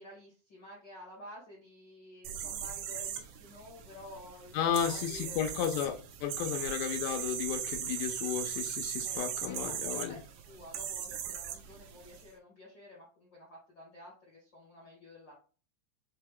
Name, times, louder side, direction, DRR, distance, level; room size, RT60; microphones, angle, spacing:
voice 1, 0.0-5.8 6.5-6.7 7.7-8.1 9.0-9.2 9.4-15.3, left 1 dB, 65° left, -4 dB, 1.0 m, -51 dB
sound 1, 2.2-12.2, right 9 dB, 75° right, 2.3 m, -39 dB
voice 2, 4.5-6.0 6.2-10.2, left 9 dB, 90° left, 4 dB, 2.8 m, -33 dB
6.3 x 2.2 x 3.5 m, 0.37 s
omnidirectional pair, 4.8 m